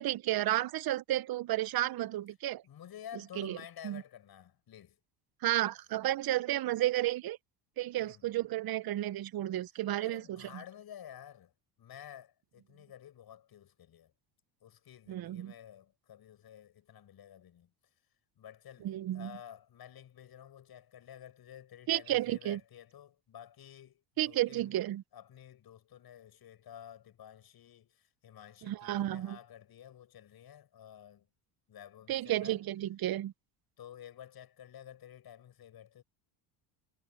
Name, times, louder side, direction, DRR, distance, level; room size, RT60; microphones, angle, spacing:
voice 1, 0.0-2.6 3.4-3.6 3.8-4.0 5.4-7.4 7.8-10.5 15.1-15.5 18.8-19.3 21.9-22.6 24.2-25.0 28.6-29.4 32.1-33.3, right 14 dB, 50° right, 1.0 m, -32 dB
voice 2, 2.6-5.0 8.0-8.3 10.0-11.5 11.8-14.1 14.6-17.7 18.4-24.7 25.1-31.3 31.7-32.6 33.8-36.0, left 10 dB, 50° left, 7.1 m, -52 dB
supercardioid pair, 95°, 47 cm